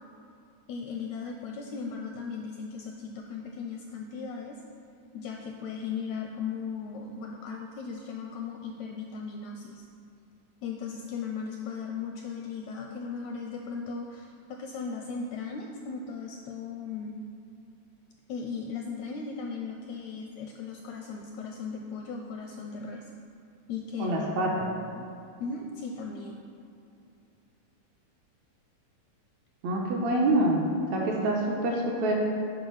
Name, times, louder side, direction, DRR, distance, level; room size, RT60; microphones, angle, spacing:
voice 1, 0.7-4.6 5.1-9.9 10.6-17.2 18.3-23.1 23.7-25.1 25.4-26.4, left 5 dB, 80° left, 2 dB, 1.6 m, -37 dB
voice 2, 24.0-24.5 29.6-30.6 30.9-32.1, right 2 dB, 70° right, -2 dB, 1.9 m, -26 dB
7.3 x 5.3 x 5.5 m, 2.7 s
omnidirectional pair, 3.7 m